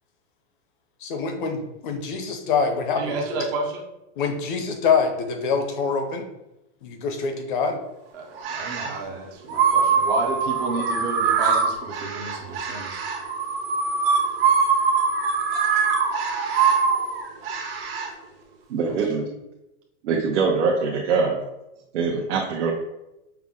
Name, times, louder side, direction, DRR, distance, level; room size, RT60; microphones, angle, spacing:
voice 1, 1.0-3.4 4.2-6.3 6.8-7.8, left 5 dB, 45° left, 5 dB, 0.7 m, -25 dB
voice 2, 3.0-3.8 8.1-13.1 18.8-19.0, right 3 dB, 20° right, 0 dB, 0.4 m, -31 dB
sound 1, 8.4-9.0 9.5-18.1, right 5 dB, 55° right, 1.0 m, -23 dB
voice 3, 18.7-19.3 20.0-21.4 21.9-22.7, right 5 dB, 85° right, -1 dB, 0.8 m, -23 dB
5.8 x 2.1 x 3.5 m, 0.93 s
supercardioid pair, 165°, 35 cm